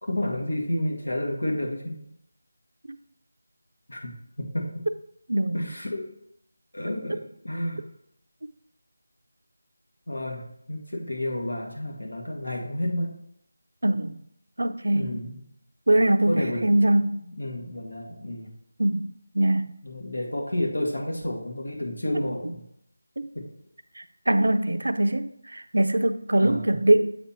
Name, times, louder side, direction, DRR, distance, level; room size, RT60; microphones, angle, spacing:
voice 1, 0.0-2.0 3.9-4.8 5.5-6.1 6.7-7.9 10.1-13.2 14.9-15.4 16.3-18.5 19.8-22.6 23.4-23.5 26.4-26.8, left 1 dB, 90° left, 0 dB, 1.9 m, -31 dB
voice 2, 5.3-5.7 13.8-14.2 14.6-15.2 15.9-17.2 18.8-19.7 22.1-22.5 23.2-23.3 24.0-27.2, right 1 dB, 80° right, 11 dB, 0.5 m, -23 dB
8.0 x 3.5 x 4.3 m, 0.76 s
figure-of-eight pair, 170°, 0 cm